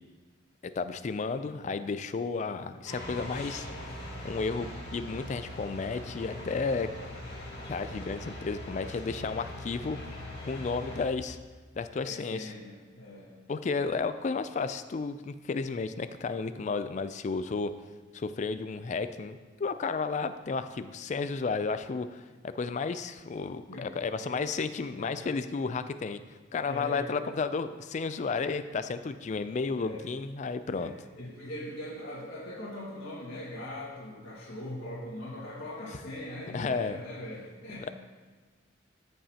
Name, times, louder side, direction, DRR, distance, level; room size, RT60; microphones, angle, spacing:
voice 1, 0.6-3.7 4.2-6.9 7.7-10.0 10.4-11.4 11.8-12.5 13.5-17.7 18.1-26.2 26.5-30.9 36.5-37.0, left 4 dB, 35° left, 11 dB, 0.3 m, -32 dB
sound 1, 2.8-11.0, left 1 dB, 50° left, 2.1 m, -41 dB
voice 2, 12.0-13.3 23.7-23.9 24.2-24.4 24.9-25.1 26.6-27.0 29.8-30.1 30.7-37.9, left 1 dB, 75° left, -9 dB, 1.8 m, -41 dB
14.0 x 5.5 x 2.8 m, 1.4 s
head